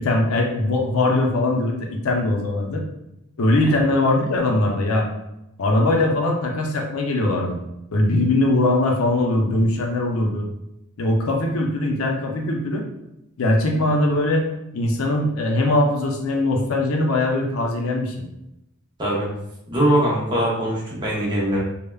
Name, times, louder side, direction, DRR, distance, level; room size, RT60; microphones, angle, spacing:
voice 1, 0.0-2.8 3.4-5.1 5.6-7.6 7.9-10.4 11.0-12.8 13.4-14.5 14.7-18.3, left 2 dB, 75° left, 1 dB, 0.5 m, -21 dB
voice 2, 19.0-19.3 19.7-21.6, right 1 dB, 20° right, -5 dB, 0.6 m, -21 dB
3.3 x 2.0 x 2.2 m, 0.88 s
head